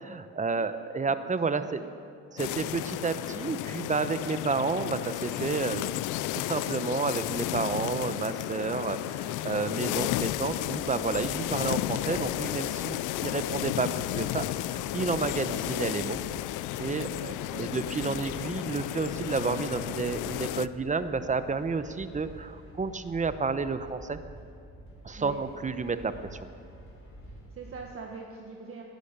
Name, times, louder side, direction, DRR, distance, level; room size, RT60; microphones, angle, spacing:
voice 1, 0.0-1.8 2.3-5.9 6.3-16.2 16.8-17.1 17.6-24.2 25.0-26.4, right 4 dB, 25° right, 11 dB, 0.9 m, -31 dB
voice 2, 1.6-1.9 15.2-15.5 17.0-17.8 18.0-18.2 25.2-25.4 27.2-28.8, right 4 dB, 50° right, 0 dB, 1.6 m, -44 dB
sound 1, 2.4-20.7, left 15 dB, 90° left, 0.4 m, -33 dB
sound 2, 10.2-27.9, right 1 dB, 45° left, 4.4 m, -48 dB
17.0 x 11.5 x 6.8 m, 2.4 s
cardioid pair, 90°, 30 cm